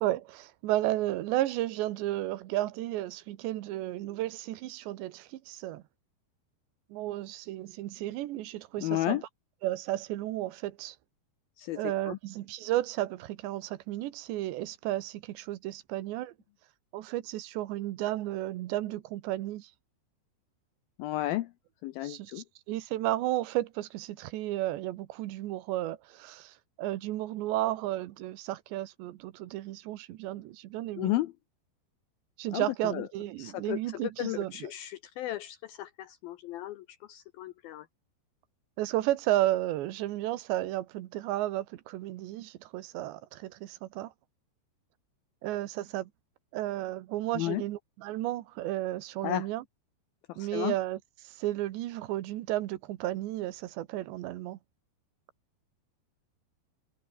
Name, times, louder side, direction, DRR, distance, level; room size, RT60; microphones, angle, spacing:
voice 1, 0.0-5.8 6.9-9.2 9.6-11.0 11.8-16.3 16.9-19.7 22.0-22.3 22.7-31.1 32.4-34.7 38.8-44.1 45.4-46.1 46.5-49.6 50.4-54.6, right 15 dB, 80° right, 3.4 m, -33 dB
voice 2, 8.8-9.2 11.6-12.2 21.0-21.5 21.8-22.4 31.0-31.3 32.5-33.1 33.4-37.9 47.3-47.6 49.2-49.5 50.3-50.8, left 15 dB, 80° left, 2.2 m, -33 dB
omnidirectional pair, 5.1 m